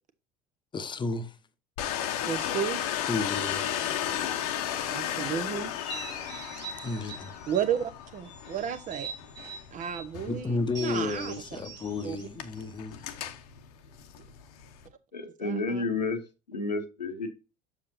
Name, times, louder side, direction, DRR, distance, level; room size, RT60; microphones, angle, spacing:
voice 1, 0.7-1.3 3.1-3.7 6.8-7.3 10.3-13.0, left 3 dB, 20° left, 0.9 m, -32 dB
Domestic sounds home sounds, 1.8-14.9, left 10 dB, 65° left, 0.9 m, -35 dB
voice 2, 2.3-2.8 4.9-5.7 7.5-9.1 9.7-11.3 12.0-12.2 15.4-15.8, right 8 dB, 35° right, 0.9 m, -32 dB
sound 1, 5.7-7.8 8.2-10.1 10.7-13.2, right 5 dB, 90° right, 1.7 m, -44 dB
voice 3, 15.1-16.2 16.5-17.3, left 3 dB, 85° left, 1.1 m, -31 dB
7.2 x 6.5 x 2.6 m
figure-of-eight pair, 65°, 21 cm